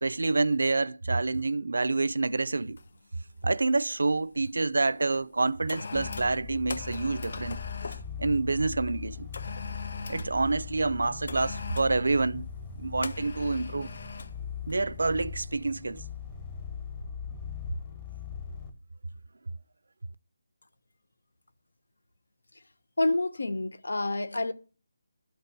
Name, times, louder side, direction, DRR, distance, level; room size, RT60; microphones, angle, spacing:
voice 1, 0.0-2.8 3.4-7.6 8.2-9.3 10.1-12.5 12.8-13.9 14.7-16.0, right 3 dB, 75° right, 0.5 m, -27 dB
sound 1, 1.9-2.1 2.8-3.1 3.3-4.5 5.2-8.1 9.3-10.4 11.3-12.0 13.0-14.4 14.7-14.9, left 4 dB, 45° left, 0.5 m, -41 dB
sound 2, 5.9-18.7, left 7 dB, 15° left, 0.8 m, -40 dB
voice 2, 23.0-24.5, left 2 dB, 85° left, 1.1 m, -28 dB
12.5 x 4.7 x 6.6 m
figure-of-eight pair, 175°, 0 cm